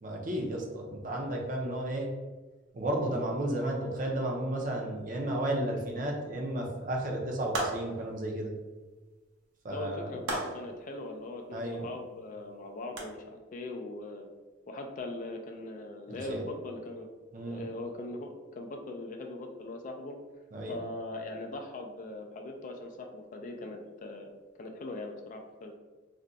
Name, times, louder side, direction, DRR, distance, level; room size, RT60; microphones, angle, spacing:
voice 1, 0.0-2.1 2.7-8.5 9.6-10.1 11.5-11.9 16.1-16.4 17.3-17.6 20.5-20.8, right 1 dB, 40° right, 0 dB, 0.5 m, -33 dB
sound 1, 7.5-8.1 10.2-10.8 13.0-13.1, right 2 dB, 80° right, 0.8 m, -34 dB
voice 2, 9.7-14.3 14.7-17.1 17.5-20.2 20.7-24.3 24.6-25.7, left 2 dB, 40° left, 3 dB, 0.3 m, -40 dB
2.5 x 2.2 x 3.9 m, 1.2 s
head